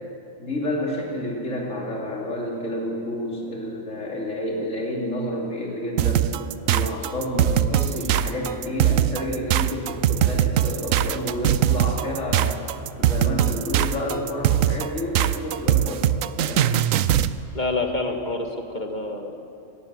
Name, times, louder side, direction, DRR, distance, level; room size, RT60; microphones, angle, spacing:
voice 1, 0.4-6.3 6.7-12.5 13.0-16.7, left 1 dB, 70° left, -2 dB, 3.2 m, -29 dB
sound 1, 6.0-17.4, right 11 dB, 80° right, 1.0 m, -21 dB
voice 2, 17.5-19.5, left 2 dB, 35° left, 3 dB, 2.0 m, -28 dB
19.5 x 15.0 x 9.6 m, 2.6 s
omnidirectional pair, 1.4 m